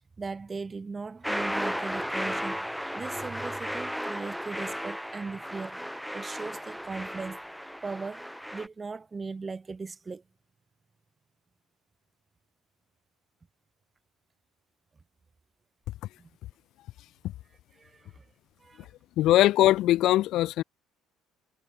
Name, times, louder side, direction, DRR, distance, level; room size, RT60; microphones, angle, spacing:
voice 1, 0.2-2.7 2.9-7.4 7.8-10.2 16.2-16.3 17.7-18.2 18.6-18.9, right 4 dB, 30° right, 4.9 m, -38 dB
sound 1, 1.2-8.7, equal, ahead, 1.5 m, -34 dB
voice 2, 19.2-20.6, left 15 dB, 65° left, 0.6 m, -21 dB
hypercardioid pair, 55°, 0 cm